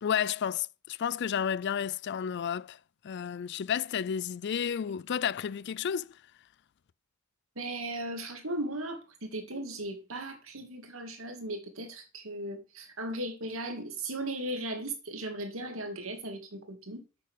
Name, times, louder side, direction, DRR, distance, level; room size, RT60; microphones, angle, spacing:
voice 1, 0.0-2.8 3.0-6.1, left 8 dB, 55° left, 0.4 m, -31 dB
voice 2, 7.6-17.0, right 1 dB, 85° right, 2.5 m, -37 dB
8.5 x 6.6 x 6.6 m
head